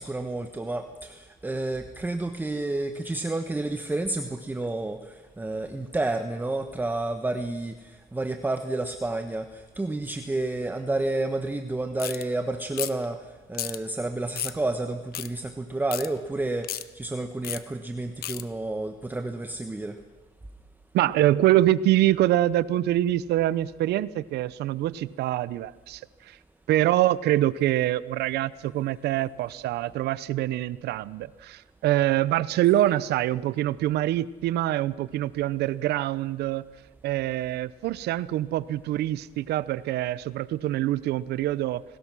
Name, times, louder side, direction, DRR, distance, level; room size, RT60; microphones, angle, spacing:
voice 1, 0.0-13.2 13.5-20.0, right 2 dB, 10° right, 7 dB, 1.2 m, -30 dB
sound 1, 12.0-12.2 12.8-13.0 13.5-13.8 14.4-14.6 15.1-15.3 15.9-16.1 16.6-16.8 17.4-17.6 18.2-18.4, left 12 dB, 65° left, 1.1 m, -32 dB
voice 2, 20.9-26.0 26.3-26.4 26.7-36.6 37.0-41.8, right 14 dB, 75° right, 18 dB, 0.8 m, -25 dB
28.5 x 19.5 x 6.2 m, 1.2 s
cardioid pair, 110°, 17 cm